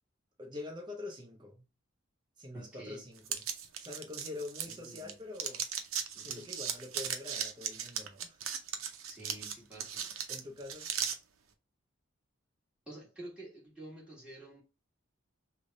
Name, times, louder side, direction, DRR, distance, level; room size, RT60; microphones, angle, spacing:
voice 1, 0.4-1.6 2.4-3.4 3.8-5.6 6.2-8.4 10.3-10.9, left 2 dB, 20° right, 0.8 m, -45 dB
voice 2, 2.5-3.0 4.7-5.1 6.1-6.5 9.1-10.1 12.9-14.6, right 1 dB, 5° right, 1.5 m, -49 dB
sound 1, 3.3-5.1 5.4-11.2, right 8 dB, 90° right, 0.6 m, -37 dB
3.3 x 2.2 x 3.9 m
head